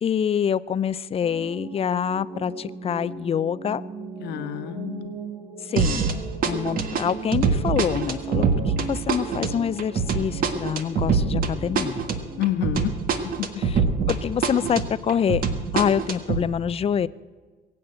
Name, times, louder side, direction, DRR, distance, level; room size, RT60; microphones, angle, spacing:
voice 1, 0.0-3.8 5.6-6.0 6.4-12.1 14.1-15.4 15.7-17.1, left 8 dB, 35° left, 17 dB, 0.5 m, -26 dB
sound 1, 1.2-12.5, right 4 dB, 40° right, 2.1 m, -38 dB
voice 2, 4.2-5.2 12.4-13.0 13.2-13.5, left 12 dB, 85° left, 8 dB, 1.4 m, -28 dB
sound 2, 5.8-6.2 6.4-14.2 14.4-16.4, right 5 dB, 55° right, 1.5 m, -24 dB
21.5 x 8.6 x 7.8 m, 1.4 s
cardioid pair, 110°, 17 cm